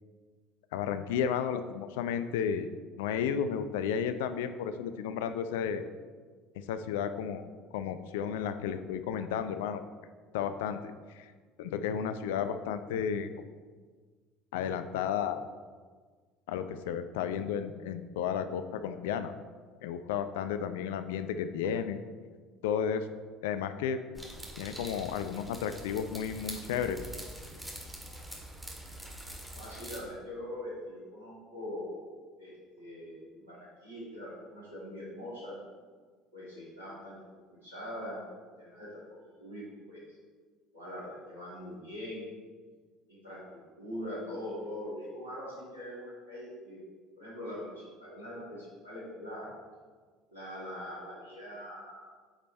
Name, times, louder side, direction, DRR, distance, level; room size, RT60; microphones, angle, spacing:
voice 1, 0.7-2.7 3.0-5.8 6.6-7.5 7.7-9.8 10.3-11.3 11.6-13.3 14.5-15.4 16.5-19.3 19.8-22.0 22.6-23.1 23.4-24.0 24.6-27.0, left 8 dB, 70° left, 10 dB, 0.4 m, -33 dB
sound 1, 24.1-30.0, right 1 dB, 5° right, 1.8 m, -44 dB
voice 2, 29.5-32.0 32.4-35.6 36.3-37.2 37.5-38.2 38.6-40.0 40.7-42.3 43.1-46.8 47.2-49.5 50.3-52.1, left 1 dB, 85° right, -8 dB, 2.6 m, -42 dB
8.8 x 5.2 x 4.2 m, 1.5 s
figure-of-eight pair, 60°, 0 cm